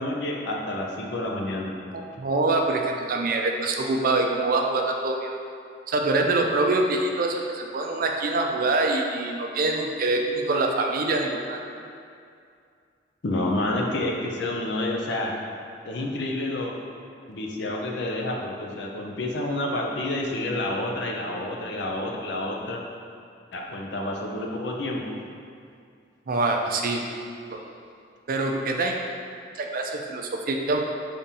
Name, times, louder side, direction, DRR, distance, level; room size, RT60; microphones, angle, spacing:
voice 1, 0.0-1.7 13.2-15.3 15.8-16.7 17.3-22.8 23.5-25.1, left 1 dB, 65° left, 0 dB, 0.6 m, -29 dB
voice 2, 1.9-5.4 5.9-11.6 26.3-27.0 27.5-27.6 28.3-28.9 29.5-30.8, right 2 dB, 50° right, 2 dB, 0.4 m, -25 dB
5.2 x 3.5 x 2.8 m, 2.3 s
head